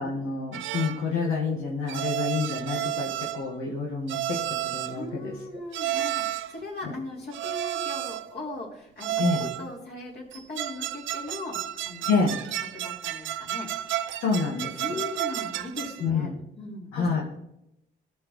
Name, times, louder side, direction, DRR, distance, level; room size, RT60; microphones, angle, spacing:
voice 1, 0.0-4.4 4.7-5.3 6.8-6.9 9.2-9.5 12.1-12.4 14.2-15.0 16.0-16.3 16.9-17.2, left 4 dB, 85° left, -3 dB, 1.9 m, -28 dB
sound 1, 0.5-1.1 1.9-3.5 4.1-5.0 5.7-6.6 7.3-8.3 9.0-9.7 10.3-16.1, right 13 dB, 75° right, 0.5 m, -32 dB
voice 2, 4.9-12.1 12.7-13.7 14.8-17.1, left 2 dB, 55° left, -2 dB, 4.0 m, -38 dB
18.0 x 6.3 x 3.2 m, 0.82 s
cardioid pair, 90°, 20 cm